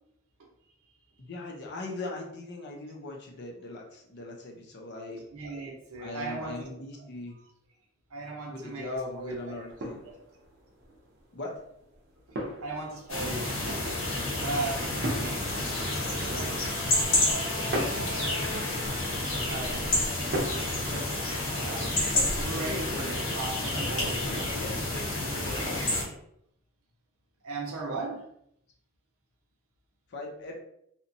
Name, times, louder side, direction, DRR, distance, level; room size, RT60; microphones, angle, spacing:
voice 1, 1.2-5.2 6.0-7.4 8.5-10.0 11.3-11.5 19.5-20.6 22.5-23.4 23.7-24.1 24.4-25.8 30.1-30.6, left 2 dB, 55° left, 0 dB, 0.6 m, -40 dB
voice 2, 5.3-6.7 8.1-8.9 9.1-9.5 12.6-15.7 16.2-16.6 19.4-19.9 21.5-21.9 22.3-24.6 27.4-28.3, right 3 dB, 90° right, 0 dB, 0.7 m, -37 dB
sound 1, 8.8-26.2, right 1 dB, 50° right, 0.5 m, -41 dB
sound 2, 13.1-26.0, left 1 dB, 70° left, 1.0 m, -29 dB
2.8 x 2.1 x 2.6 m, 0.73 s
head